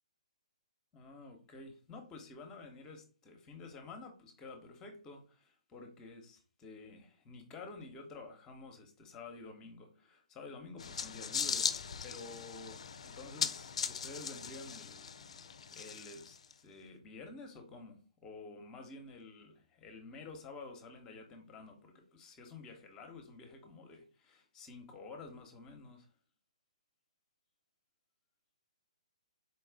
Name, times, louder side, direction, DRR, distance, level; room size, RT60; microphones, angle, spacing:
voice 1, 0.9-26.1, left 3 dB, 20° left, 0.9 m, -51 dB
sound 1, 10.8-16.5, left 6 dB, 65° left, 0.4 m, -39 dB
4.3 x 2.3 x 3.5 m
figure-of-eight pair, 135°, 4 cm